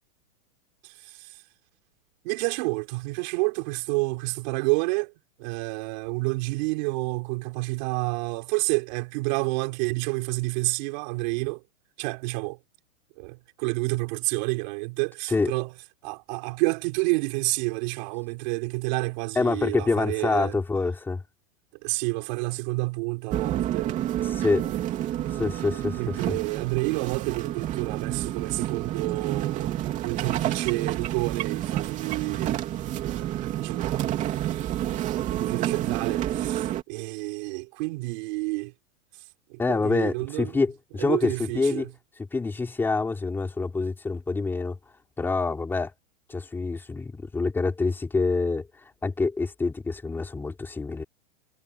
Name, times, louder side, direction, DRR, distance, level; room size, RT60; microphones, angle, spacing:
voice 1, 0.8-1.3 2.2-5.1 5.4-11.6 12.0-12.6 13.2-15.7 16.0-20.6 21.8-24.0 24.4-25.4 25.9-29.7 30.0-32.6 33.0-34.1 34.8-38.7 39.5-40.5 41.0-41.9, right 27 dB, 35° right, 4.6 m, -29 dB
voice 2, 19.3-21.2 24.2-24.7 25.3-26.4 39.6-41.9 42.3-44.8 45.2-45.9 46.3-48.7 49.0-51.0, left 3 dB, 5° left, 2.9 m, -26 dB
sound 1, 23.3-36.8, right 12 dB, 20° right, 3.2 m, -29 dB
supercardioid pair, 175°, 39 cm